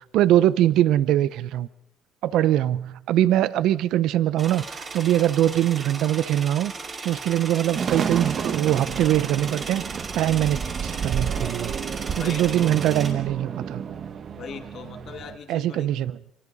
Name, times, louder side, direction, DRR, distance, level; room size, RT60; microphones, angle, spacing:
voice 1, 0.0-1.7 2.2-6.7 7.0-11.7 12.1-13.8 15.5-16.2, right 12 dB, 70° right, 17 dB, 0.7 m, -22 dB
sound 1, 4.4-13.1, right 4 dB, 30° right, 4.8 m, -36 dB
sound 2, 7.7-15.4, right 7 dB, 45° right, 1.3 m, -31 dB
voice 2, 12.1-12.8 14.3-15.9, left 7 dB, 55° left, 6 dB, 2.6 m, -40 dB
29.5 x 23.5 x 4.2 m, 0.72 s
cardioid pair, 110°, 0 cm